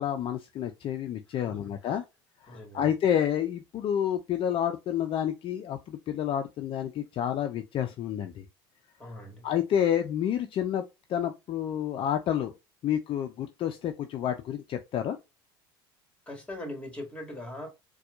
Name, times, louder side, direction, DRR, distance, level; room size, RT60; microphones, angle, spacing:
voice 1, 0.0-2.0 2.5-8.4 9.4-10.8 11.1-12.5 12.8-15.2, left 10 dB, 45° left, 0.5 m, -29 dB
voice 2, 1.3-2.0 2.5-2.9 9.0-9.5 16.3-17.7, left 1 dB, 10° left, 1.8 m, -41 dB
4.2 x 2.3 x 2.4 m
hypercardioid pair, 80°, 12 cm